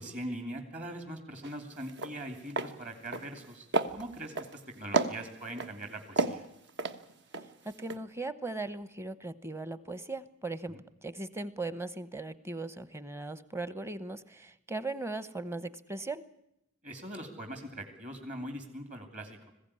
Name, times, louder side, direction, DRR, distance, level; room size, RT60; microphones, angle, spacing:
voice 1, 0.0-6.4 10.7-10.8 16.8-19.5, right 1 dB, 35° right, 5 dB, 2.7 m, -42 dB
sound 1, 1.4-1.6 1.9-2.1 2.5-2.7 3.1-3.5 3.7-4.5 4.9-5.7 6.2-7.5 7.8-8.0, right 3 dB, 60° right, 1.3 m, -31 dB
voice 2, 7.8-10.8 11.0-16.2, right 2 dB, 15° right, 15 dB, 1.0 m, -38 dB
21.0 x 16.0 x 9.9 m, 0.82 s
head